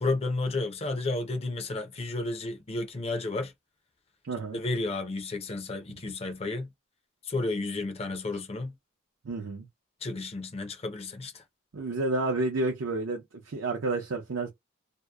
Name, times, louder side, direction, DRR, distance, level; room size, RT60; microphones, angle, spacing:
voice 1, 0.0-3.5 4.5-6.7 7.3-8.7 10.0-11.4, left 2 dB, 30° left, 0.5 m, -32 dB
voice 2, 4.3-4.6 9.2-9.7 11.7-14.5, right 2 dB, 75° right, 0.6 m, -30 dB
2.7 x 2.0 x 2.2 m
head